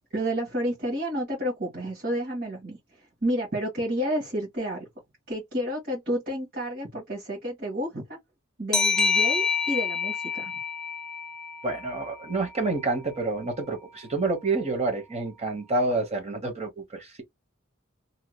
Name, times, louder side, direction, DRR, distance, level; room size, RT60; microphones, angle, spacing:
voice 1, 0.1-4.9 5.3-8.2 8.6-10.5, equal, 50° right, 1.4 m, -30 dB
sound 1, 8.7-12.1, left 5 dB, 5° left, 0.3 m, -27 dB
voice 2, 11.6-17.2, right 3 dB, 30° right, 0.9 m, -28 dB
2.8 x 2.2 x 3.1 m
head